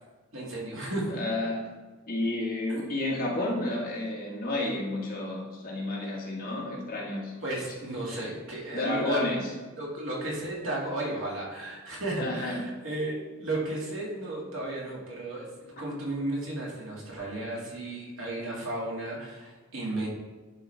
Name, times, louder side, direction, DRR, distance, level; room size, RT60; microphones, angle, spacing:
voice 1, 0.3-1.2 7.4-9.2 9.8-20.1, right 1 dB, 75° right, -4 dB, 2.2 m, -34 dB
voice 2, 1.1-1.6 2.1-7.4 8.7-9.5 12.2-12.7, left 2 dB, 45° left, -3 dB, 1.6 m, -31 dB
11.0 x 4.8 x 3.4 m, 1.3 s
head